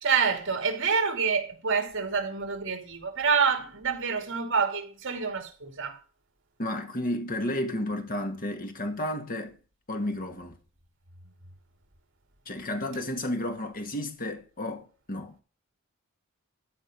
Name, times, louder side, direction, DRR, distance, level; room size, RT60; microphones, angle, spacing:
voice 1, 0.0-6.0, right 5 dB, 60° right, 2.8 m, -27 dB
voice 2, 6.6-9.6 9.9-10.6 12.5-15.4, left 1 dB, 45° left, 1.9 m, -32 dB
13.0 x 5.2 x 5.2 m
head